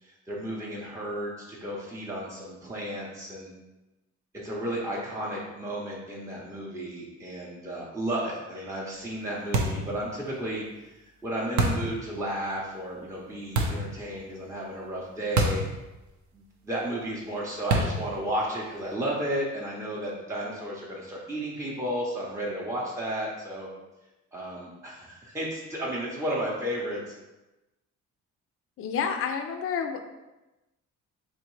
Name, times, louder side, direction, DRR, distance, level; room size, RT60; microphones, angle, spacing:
voice 1, 0.0-3.5 4.3-15.6 16.3-23.7 24.3-27.1, right 1 dB, 10° right, -4 dB, 0.6 m, -33 dB
sound 1, 9.5-9.9 11.6-11.9 13.6-13.9 15.4-15.7 16.0-16.1 17.7-18.1, right 2 dB, 70° right, 0.7 m, -25 dB
voice 2, 28.8-30.0, left 6 dB, 45° left, 6 dB, 0.4 m, -29 dB
3.4 x 3.1 x 3.0 m, 1.0 s
cardioid pair, 90°, 30 cm